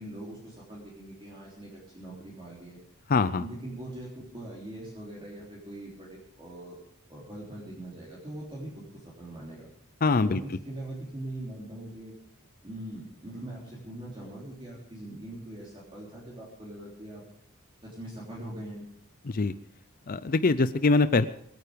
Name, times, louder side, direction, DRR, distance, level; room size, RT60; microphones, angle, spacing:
voice 1, 0.0-2.8 3.4-6.8 7.1-9.7 10.1-12.1 12.6-17.2 17.8-18.9, right 1 dB, 25° right, -5 dB, 3.7 m, -42 dB
voice 2, 3.1-3.4 10.0-10.4 19.3-19.5 20.1-21.3, left 3 dB, 40° left, 13 dB, 0.5 m, -23 dB
23.5 x 9.3 x 5.1 m, 0.71 s
head